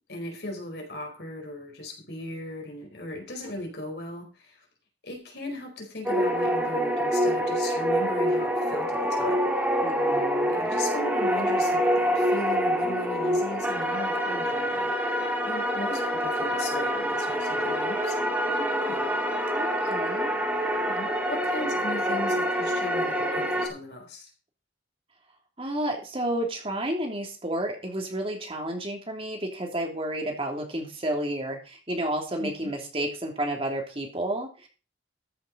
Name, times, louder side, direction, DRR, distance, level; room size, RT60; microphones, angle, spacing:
voice 1, 0.1-4.6 5.0-9.5 10.5-19.1 20.8-24.3 32.4-32.7, left 1 dB, 60° left, 2 dB, 4.6 m, -37 dB
sound 1, 6.0-23.7, equal, 10° right, 2.4 m, -26 dB
voice 2, 9.8-10.6 19.5-20.3 25.6-34.7, right 1 dB, 30° right, 2 dB, 3.1 m, -31 dB
14.0 x 7.4 x 5.2 m, 0.34 s
head